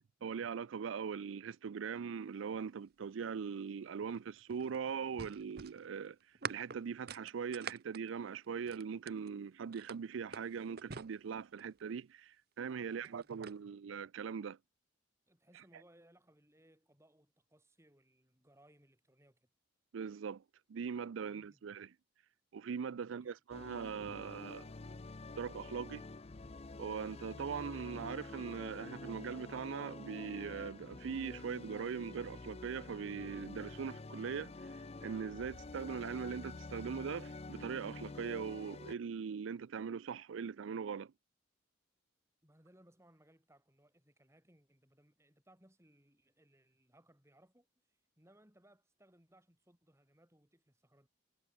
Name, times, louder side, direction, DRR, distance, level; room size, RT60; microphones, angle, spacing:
voice 1, 0.2-6.2 6.5-14.6 19.9-20.4 20.7-21.9 22.5-24.7 25.4-26.0 26.8-34.5 35.0-41.1, right 6 dB, 90° right, 0.4 m, -41 dB
sound 1, 4.0-9.3 9.7-11.8 12.8-13.6, right 6 dB, 55° right, 1.0 m, -47 dB
voice 2, 12.8-13.4 15.3-19.5 21.2-21.6 23.0-23.4 42.4-51.1, right 1 dB, 15° right, 7.6 m, -67 dB
sound 2, 23.5-39.0, left 3 dB, 30° left, 0.6 m, -48 dB
head